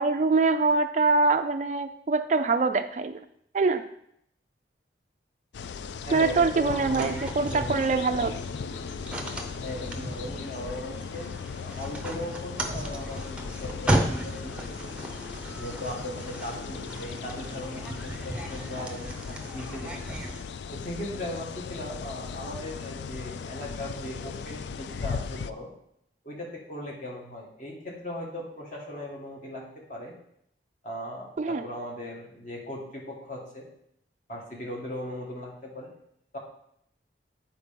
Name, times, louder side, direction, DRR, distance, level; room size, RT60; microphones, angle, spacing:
voice 1, 0.0-3.2 3.5-3.9 6.1-8.3 31.4-31.7, right 3 dB, 40° right, 9 dB, 0.3 m, -24 dB
sound 1, 5.5-25.5, left 5 dB, 75° left, 0.3 m, -38 dB
voice 2, 6.0-8.1 9.5-11.3 11.6-15.1 15.6-20.2 20.7-25.7 26.2-30.1 30.8-33.7 34.3-35.9 36.3-36.4, left 1 dB, 45° left, -2 dB, 1.8 m, -38 dB
sound 2, 6.7-20.4, right 1 dB, 5° right, 0.7 m, -35 dB
8.0 x 4.5 x 5.2 m, 0.73 s
head